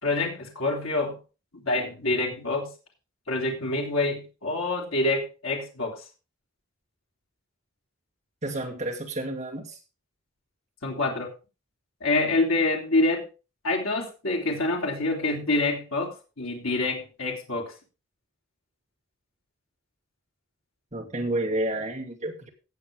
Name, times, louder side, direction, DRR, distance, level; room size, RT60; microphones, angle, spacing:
voice 1, 0.0-1.2 1.6-2.7 3.3-6.0 10.8-11.3 12.0-13.3 13.6-17.7, left 2 dB, 70° left, -1 dB, 3.3 m, -26 dB
voice 2, 8.4-9.8 20.9-22.5, right 1 dB, 35° right, -1 dB, 2.7 m, -30 dB
17.5 x 7.2 x 3.6 m, 0.32 s
head